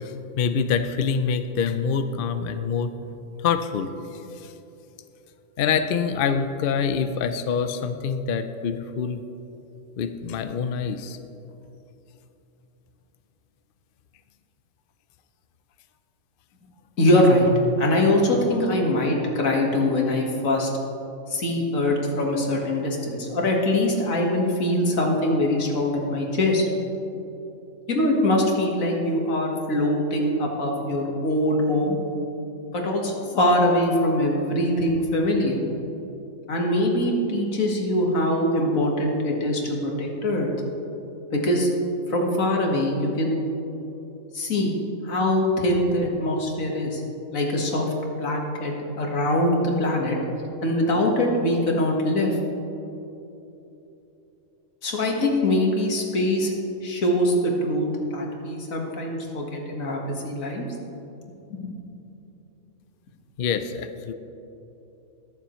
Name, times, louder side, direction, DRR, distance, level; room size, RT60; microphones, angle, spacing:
voice 1, 0.0-2.9 3.4-3.9 5.6-9.2 10.0-11.2 63.4-64.1, left 6 dB, 60° left, 9 dB, 0.6 m, -25 dB
voice 2, 17.0-17.5 17.8-20.7 21.3-26.6 27.9-32.0 32.7-35.6 36.5-40.5 41.3-41.7 42.1-43.4 44.3-44.7 45.0-47.0 47.3-47.9 48.2-50.2 50.6-52.3 54.8-56.5 56.8-60.7 61.5-61.6, left 1 dB, 80° left, 0 dB, 2.0 m, -23 dB
22.0 x 7.3 x 3.1 m, 2.9 s
omnidirectional pair, 1.4 m